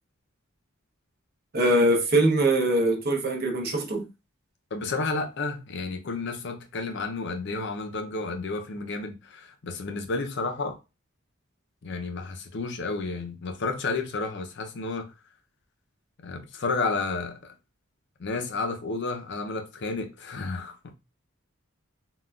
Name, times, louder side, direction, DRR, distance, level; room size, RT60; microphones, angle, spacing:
voice 1, 1.5-4.1, right 1 dB, 50° right, 0.7 m, -22 dB
voice 2, 4.7-10.8 11.8-15.1 16.2-17.5 18.2-20.9, left 3 dB, 55° left, 0.5 m, -31 dB
3.7 x 2.2 x 2.3 m
head